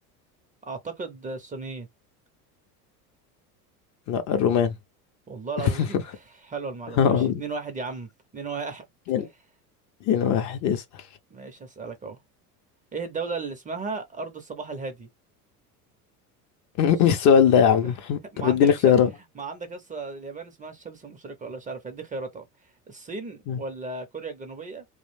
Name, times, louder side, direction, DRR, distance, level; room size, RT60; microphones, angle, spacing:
voice 1, 0.6-1.9 5.3-8.9 11.3-12.2 12.9-15.1 17.8-18.0 18.3-18.9 19.3-22.4 22.9-24.8, right 4 dB, 15° right, 0.5 m, -35 dB
voice 2, 4.1-4.7 7.0-7.4 9.1-9.3 10.1-10.8 16.8-19.1 23.5-23.6, left 8 dB, 40° left, 0.4 m, -20 dB
2.4 x 2.1 x 3.2 m
hypercardioid pair, 75°, 47 cm